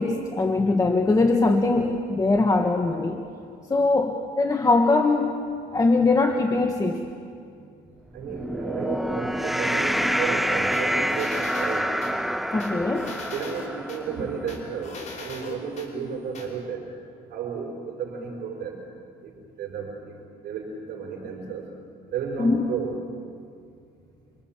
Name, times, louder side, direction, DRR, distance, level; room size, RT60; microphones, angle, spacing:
voice 1, 0.0-3.2 3.7-5.3 5.7-7.1 12.5-13.1 22.4-22.6, left 3 dB, 20° left, 3 dB, 1.6 m, -21 dB
voice 2, 8.1-11.9 12.7-16.9 17.3-18.8 19.2-19.3 19.6-20.1 20.4-21.7 22.1-23.0, right 6 dB, 70° right, 0 dB, 5.0 m, -33 dB
sound 1, 8.2-14.7, equal, ahead, 0.7 m, -27 dB
sound 2, 10.7-12.1 12.6-14.0 14.5-15.9 16.3-16.5, left 4 dB, 45° left, 5.7 m, -40 dB
28.5 x 25.0 x 7.4 m, 2.4 s
cardioid pair, 110°, 17 cm